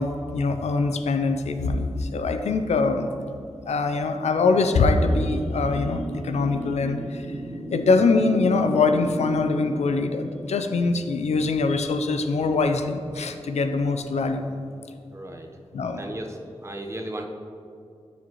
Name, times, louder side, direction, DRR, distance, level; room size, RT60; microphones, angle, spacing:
voice 1, 0.0-3.1 3.7-7.3 7.7-14.4 15.7-16.0, left 3 dB, 85° left, 7 dB, 0.4 m, -23 dB
sound 1, 4.5-10.0, right 1 dB, 70° right, 1.0 m, -35 dB
voice 2, 15.1-15.5 16.0-17.3, right 1 dB, 25° right, 2 dB, 0.8 m, -35 dB
12.0 x 4.1 x 3.0 m, 2.4 s
cardioid pair, 50°, 11 cm